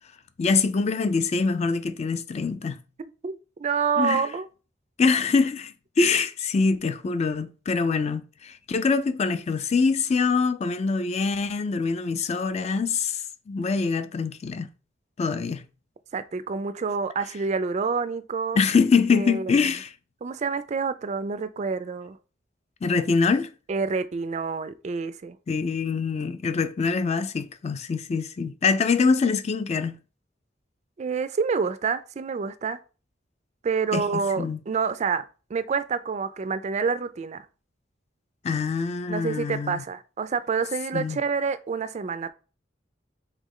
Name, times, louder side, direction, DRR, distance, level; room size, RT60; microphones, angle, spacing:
voice 1, 0.4-2.8 4.0-4.2 5.0-14.7 15.2-15.6 18.6-19.9 22.8-23.5 25.5-30.0 33.9-34.6 38.4-39.8 40.9-41.2, left 4 dB, 35° left, 0.3 m, -24 dB
voice 2, 3.2-4.5 16.1-18.6 19.1-19.7 20.2-22.2 23.7-25.4 31.0-32.8 33.6-35.2 35.5-37.5 39.1-42.3, right 5 dB, 40° right, 0.3 m, -28 dB
3.7 x 3.1 x 3.7 m
head